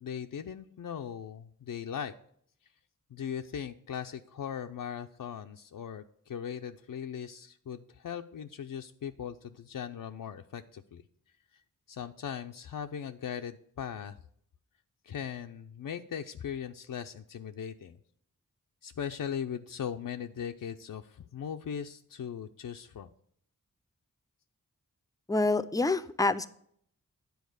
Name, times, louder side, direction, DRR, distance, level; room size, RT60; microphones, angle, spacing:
voice 1, 0.0-2.1 3.1-11.0 11.9-14.2 15.0-18.0 18.8-23.1, left 8 dB, 75° left, 5 dB, 0.5 m, -39 dB
voice 2, 25.3-26.5, left 2 dB, 10° left, 13 dB, 0.5 m, -27 dB
9.4 x 4.5 x 6.4 m, 0.65 s
wide cardioid pair, 70°, 33 cm